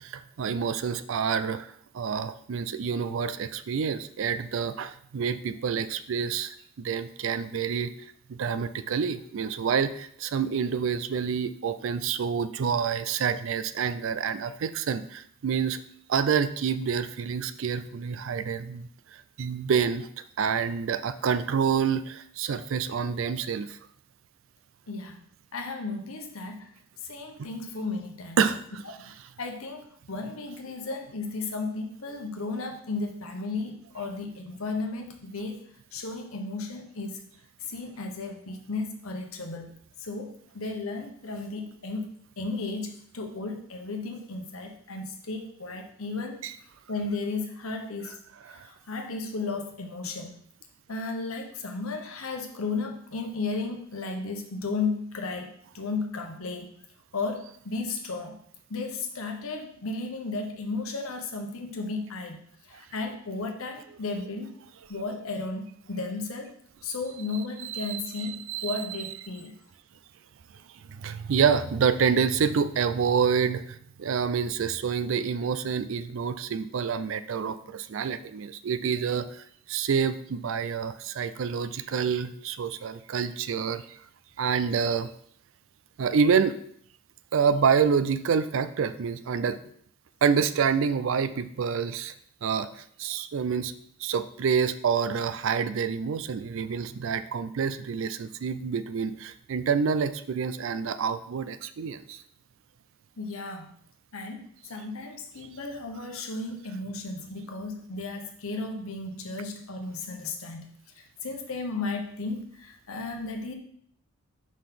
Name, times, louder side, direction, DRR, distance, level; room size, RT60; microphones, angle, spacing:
voice 1, 0.0-1.7 1.9-7.9 8.3-15.8 16.1-20.1 20.4-23.8 28.4-28.6 46.4-46.5 48.5-48.7 67.6-68.8 70.9-83.8 84.4-85.1 86.0-86.6 87.3-89.6 90.2-92.1 92.4-93.7 94.0-102.2, right 6 dB, 60° right, 14 dB, 0.4 m, -27 dB
voice 2, 24.9-25.2 25.5-26.7 27.0-28.4 29.0-29.1 29.4-35.6 35.9-37.3 37.6-46.4 46.9-48.2 48.5-50.4 50.9-56.7 57.1-58.4 58.7-62.4 62.7-64.6 64.9-66.5 66.8-69.5 103.2-103.7 104.1-113.5, left 3 dB, 75° left, 3 dB, 1.0 m, -34 dB
5.1 x 3.9 x 5.8 m, 0.65 s
head